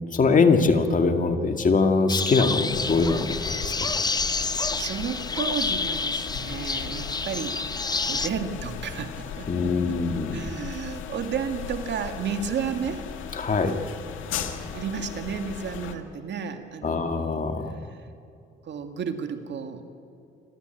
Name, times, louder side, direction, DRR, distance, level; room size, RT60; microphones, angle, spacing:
voice 1, 0.0-3.7 9.5-10.4 13.3-13.8 16.8-17.8, left 4 dB, 40° left, 5 dB, 2.1 m, -22 dB
sound 1, 2.1-8.3, left 4 dB, 20° left, 0.8 m, -29 dB
sound 2, 2.7-16.0, left 8 dB, 85° left, 2.0 m, -37 dB
voice 2, 4.3-7.6 8.1-10.0 10.3-13.0 14.7-17.4 17.8-18.1 18.6-19.8, right 6 dB, 65° right, 7 dB, 2.1 m, -32 dB
29.0 x 13.0 x 9.2 m, 2.6 s
cardioid pair, 90°, 20 cm